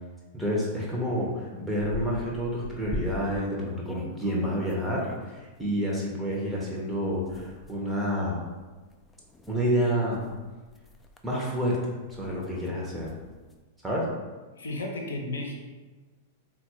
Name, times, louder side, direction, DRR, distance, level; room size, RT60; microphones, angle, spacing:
voice 1, 0.3-8.4 9.5-10.2 11.2-13.1 13.8-14.1, equal, 5° right, -5 dB, 0.7 m, -29 dB
sound 1, 0.8-0.9 1.3-3.5 3.9-5.7 6.3-6.4 7.1-13.6, left 2 dB, 10° left, 0.3 m, -43 dB
voice 2, 14.5-15.5, left 2 dB, 70° left, 1 dB, 0.6 m, -33 dB
3.9 x 2.3 x 2.9 m, 1.3 s
figure-of-eight pair, 95°, 0 cm